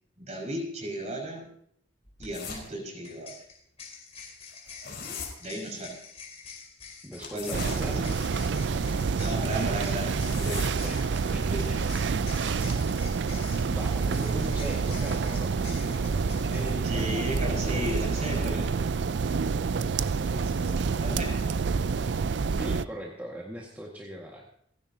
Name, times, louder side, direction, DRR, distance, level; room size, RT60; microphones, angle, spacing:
voice 1, 0.2-1.5 2.2-3.3 5.4-6.0 7.2-7.9 9.2-10.7 11.2-11.9 16.8-18.7 20.1-20.7 21.0-21.5, equal, 35° right, 0 dB, 5.6 m, -35 dB
sound 1, 2.0-2.3 3.0-16.7, left 5 dB, 35° left, 4.7 m, -46 dB
sound 2, 2.3-2.7 4.5-5.3 7.2-7.8 10.0-10.8, left 6 dB, 55° left, 4.6 m, -39 dB
voice 2, 7.0-8.1 10.8-11.9 13.7-18.7 22.5-24.5, equal, 10° right, -3 dB, 1.8 m, -40 dB
sound 3, 7.5-22.9, right 5 dB, 65° right, 0.4 m, -28 dB
29.5 x 10.5 x 2.8 m, 0.66 s
head